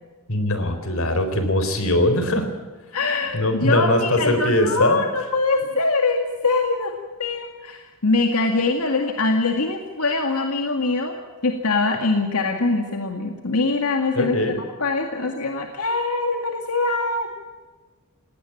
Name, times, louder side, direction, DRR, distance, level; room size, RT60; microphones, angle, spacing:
voice 1, 0.3-2.5 3.3-5.0 14.2-14.6, left 1 dB, 65° left, 8 dB, 4.0 m, -21 dB
voice 2, 2.9-6.9 7.2-11.2 11.4-17.3, left 3 dB, 90° left, 3 dB, 2.1 m, -23 dB
19.5 x 18.0 x 8.6 m, 1.3 s
head